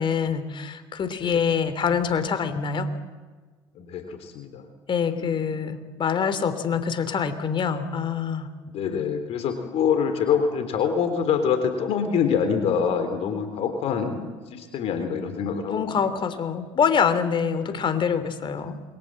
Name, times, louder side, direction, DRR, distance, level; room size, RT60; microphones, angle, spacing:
voice 1, 0.0-2.9 4.9-8.5 15.7-18.7, left 6 dB, 45° left, 11 dB, 3.1 m, -25 dB
voice 2, 3.7-4.7 5.2-5.4 8.7-16.3 17.6-17.8, left 7 dB, 65° left, 7 dB, 3.6 m, -26 dB
28.0 x 23.5 x 7.7 m, 1.4 s
hypercardioid pair, 70°, 11 cm